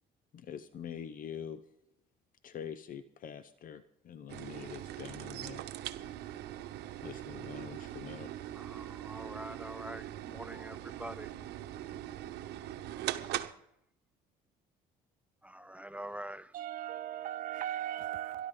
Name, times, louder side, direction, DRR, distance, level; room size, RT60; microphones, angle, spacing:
voice 1, 0.3-1.6 2.4-5.6 7.0-8.7, left 8 dB, 55° left, 0.8 m, -45 dB
sound 1, 4.3-13.5, right 13 dB, 80° right, 1.0 m, -41 dB
voice 2, 8.5-11.3 15.4-16.5, right 1 dB, 10° right, 0.4 m, -45 dB
voice 3, 16.5-18.5, right 12 dB, 55° right, 0.6 m, -37 dB
25.0 x 11.5 x 3.8 m
cardioid pair, 110°, 17 cm